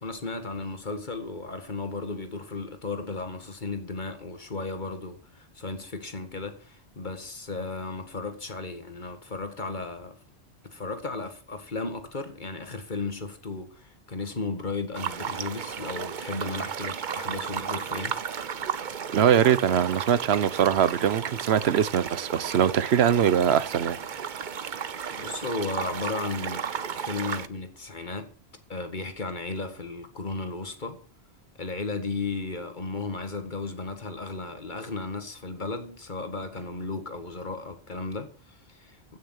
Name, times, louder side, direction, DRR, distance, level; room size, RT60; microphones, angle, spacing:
voice 1, 0.0-10.2 10.6-18.1 25.1-28.3 28.7-31.0 31.6-39.0, left 3 dB, 45° left, 1.9 m, -35 dB
sound 1, 14.9-27.5, right 7 dB, 50° right, 0.9 m, -34 dB
voice 2, 19.1-24.0, right 9 dB, 75° right, 1.1 m, -22 dB
15.5 x 6.8 x 6.4 m
omnidirectional pair, 1.1 m